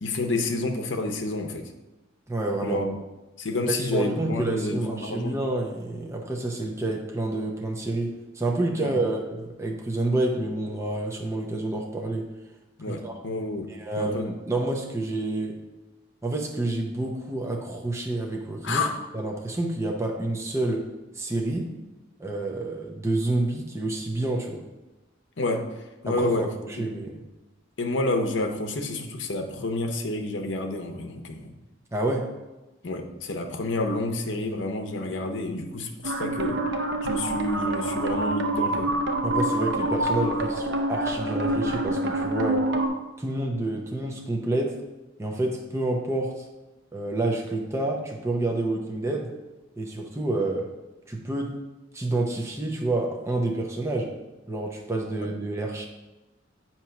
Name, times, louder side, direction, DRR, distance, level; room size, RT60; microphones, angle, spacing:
voice 1, 0.0-1.6 2.6-3.0 3.4-5.3 8.8-8.9 12.8-13.7 14.0-14.2 18.6-18.9 25.4-25.7 26.0-26.4 26.8-26.9 27.8-31.5 32.8-36.6 37.0-38.9, left 2 dB, 65° left, 4 dB, 0.8 m, -29 dB
voice 2, 2.3-2.8 3.7-12.3 12.9-13.2 13.7-15.6 16.2-18.8 19.1-20.9 21.1-21.7 22.2-24.6 26.1-27.2 31.9-32.3 39.2-42.7 43.2-44.8 45.2-46.4 46.9-49.3 49.8-50.7 51.1-51.5 51.9-54.1 54.5-55.9, right 2 dB, 15° right, 0 dB, 0.6 m, -28 dB
sound 1, 36.0-42.9, right 1 dB, 60° right, 0.6 m, -26 dB
7.6 x 3.0 x 5.7 m, 1.1 s
head